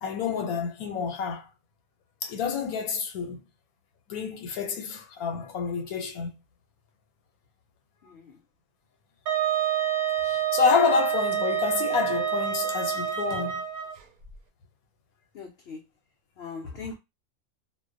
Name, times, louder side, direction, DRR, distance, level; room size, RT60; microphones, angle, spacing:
voice 1, 0.0-1.5 2.2-3.4 4.1-6.3 10.2-13.6, left 6 dB, 85° left, 1.1 m, -28 dB
voice 2, 8.0-8.3 15.3-15.8 16.4-16.9, left 4 dB, 60° left, 0.7 m, -39 dB
Wind instrument woodwind instrument, 9.3-13.9, right 9 dB, 85° right, 1.1 m, -27 dB
2.4 x 2.0 x 2.5 m
omnidirectional pair, 1.5 m